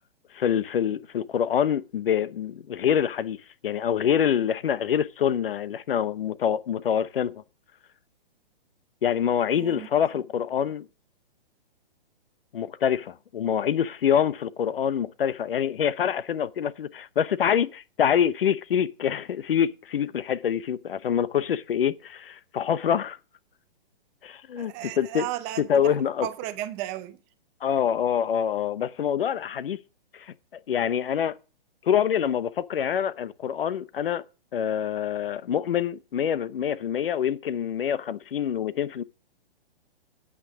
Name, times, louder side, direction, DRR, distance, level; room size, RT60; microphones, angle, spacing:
voice 1, 0.3-3.4 3.6-7.3 9.0-10.8 12.5-23.2 24.2-25.2 25.7-26.3 27.6-29.8 30.1-30.3 30.7-31.4 31.8-34.2 34.5-39.0, left 8 dB, 70° left, 0.9 m, -25 dB
voice 2, 9.5-9.9 10.1-10.2 24.6-25.9 26.2-27.2, right 14 dB, 15° right, 0.6 m, -34 dB
8.7 x 8.4 x 6.1 m
hypercardioid pair, 155°, 30 cm